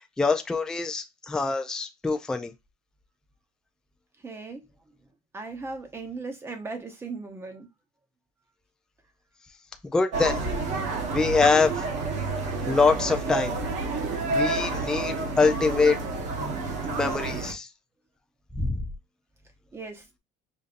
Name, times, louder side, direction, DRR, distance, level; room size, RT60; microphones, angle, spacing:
voice 1, 0.2-2.5 9.9-10.4 11.1-11.8 12.7-13.5 14.3-16.0 16.9-17.7 18.6-18.8, left 4 dB, 5° left, 0.3 m, -24 dB
voice 2, 4.2-4.6 5.3-7.7 19.7-20.2, right 3 dB, 15° right, 0.8 m, -37 dB
sound 1, 10.1-17.5, right 3 dB, 50° right, 1.1 m, -29 dB
5.2 x 2.6 x 2.5 m
cardioid pair, 155°, 16 cm